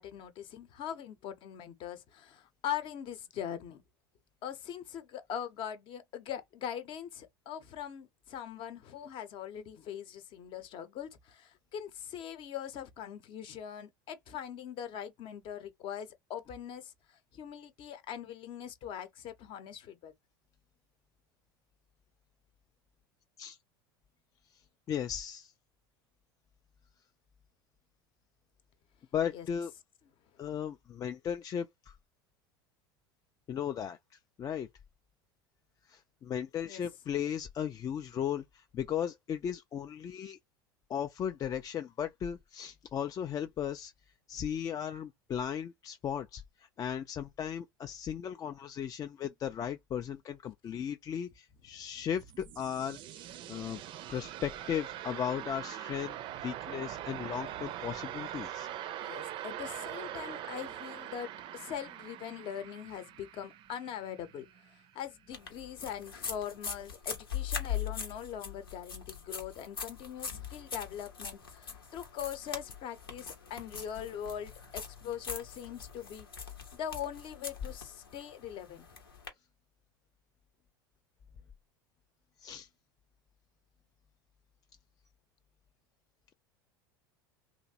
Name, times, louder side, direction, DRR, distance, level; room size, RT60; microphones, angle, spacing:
voice 1, 0.0-3.8 4.4-16.9 17.3-20.1 29.3-29.5 36.6-36.8 59.0-76.5 76.7-78.9, left 9 dB, 45° left, 0.7 m, -42 dB
voice 2, 24.9-25.5 29.1-29.7 30.4-31.9 33.5-34.0 34.4-34.7 35.8-40.4 40.9-43.9 44.3-53.2 53.5-53.8 54.1-56.2 56.4-58.7 82.4-82.7, left 9 dB, 30° left, 0.3 m, -36 dB
sound 1, 52.0-64.8, right 12 dB, 45° right, 0.4 m, -43 dB
sound 2, 65.3-79.3, left 7 dB, 85° left, 0.9 m, -41 dB
2.9 x 2.5 x 2.7 m
hypercardioid pair, 75°, 12 cm